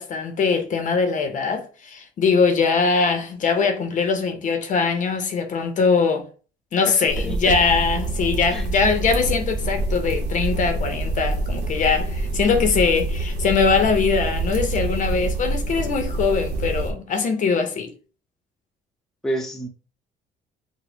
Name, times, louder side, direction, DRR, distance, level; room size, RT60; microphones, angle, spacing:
voice 1, 0.0-6.2 6.7-17.9, left 5 dB, 50° left, 0.6 m, -22 dB
voice 2, 6.9-7.4 8.5-8.6 19.2-19.7, right 1 dB, 5° left, 0.6 m, -29 dB
sound 1, 7.1-16.9, right 2 dB, 85° right, 0.7 m, -26 dB
4.0 x 2.0 x 2.7 m
cardioid pair, 110°, 17 cm